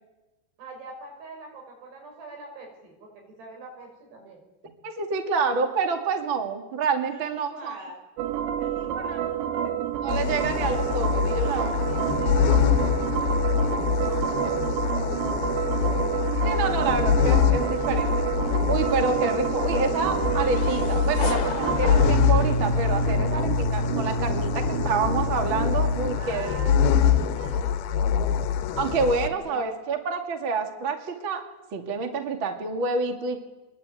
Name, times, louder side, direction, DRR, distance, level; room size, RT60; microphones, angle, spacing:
voice 1, 0.6-4.4 7.0-8.0 8.5-9.2 11.3-13.6 14.0-15.3 22.9-23.3 26.2-27.7 29.2-29.8, right 2 dB, 70° right, 2 dB, 7.8 m, -43 dB
voice 2, 4.8-7.7 9.1-9.2 10.0-11.8 16.4-18.1 18.7-26.6 28.8-31.5 31.7-33.4, right 4 dB, 40° right, 6 dB, 2.2 m, -28 dB
sound 1, 8.2-26.2, right 7 dB, 85° right, 3.6 m, -28 dB
sound 2, 10.1-29.3, left 8 dB, 70° left, 3.0 m, -25 dB
sound 3, 19.6-23.6, left 5 dB, 50° left, 2.6 m, -36 dB
26.0 x 22.0 x 9.0 m, 1.1 s
omnidirectional pair, 4.9 m